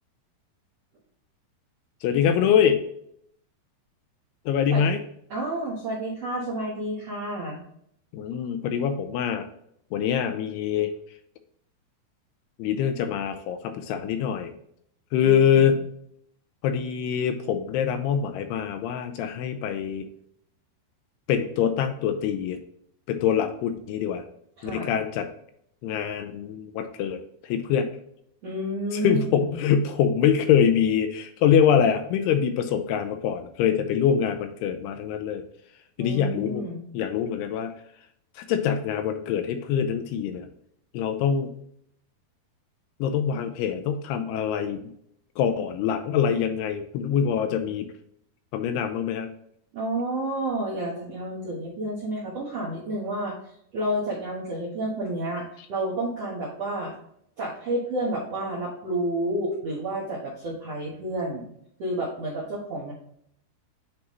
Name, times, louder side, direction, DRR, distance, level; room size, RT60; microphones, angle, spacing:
voice 1, 2.0-2.8 4.5-5.0 8.1-9.5 9.9-10.9 12.6-14.5 15.1-15.8 16.6-20.0 21.3-22.6 23.1-24.2 24.6-25.3 25.8-27.9 28.9-35.4 36.0-36.6 36.9-37.7 38.4-40.5 40.9-41.5 43.0-44.8 45.4-47.9 48.5-49.3, left 8 dB, 80° left, 8 dB, 2.5 m, -24 dB
voice 2, 5.3-7.6 15.2-15.7 24.6-24.9 28.4-29.6 36.0-36.8 49.7-53.4 53.7-56.9 57.4-61.5 61.8-62.9, right 1 dB, 65° right, -6 dB, 1.6 m, -30 dB
8.7 x 3.7 x 3.1 m, 0.70 s
omnidirectional pair, 4.8 m